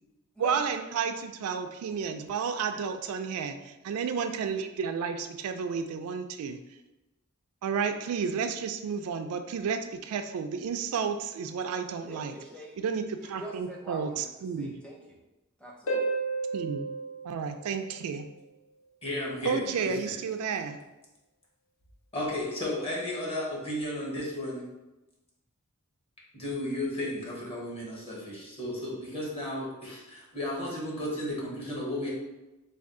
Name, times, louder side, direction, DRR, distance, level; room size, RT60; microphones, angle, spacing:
voice 1, 0.4-6.6 7.6-12.3 12.8-14.7 16.5-16.9 17.2-18.3 19.4-20.8, right 6 dB, 70° right, 7 dB, 0.3 m, -32 dB
voice 2, 12.1-12.8 13.2-14.3 14.6-15.2 15.6-16.0, right 1 dB, 5° left, -3 dB, 0.7 m, -44 dB
Harp, 15.9-18.4 21.9-22.0, right 3 dB, 65° left, 0.7 m, -33 dB
voice 3, 19.0-20.2 22.1-24.6 26.3-32.1, left 1 dB, 25° left, -5 dB, 1.0 m, -34 dB
3.4 x 2.3 x 3.7 m, 1.0 s
head